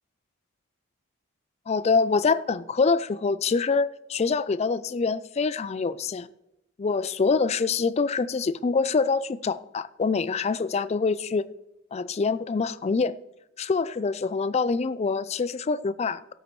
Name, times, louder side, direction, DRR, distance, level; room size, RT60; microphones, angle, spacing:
voice 1, 1.7-6.3 6.8-11.5 11.9-13.1 13.6-16.3, left 4 dB, 30° left, 0.3 m, -25 dB
17.5 x 7.9 x 3.1 m
head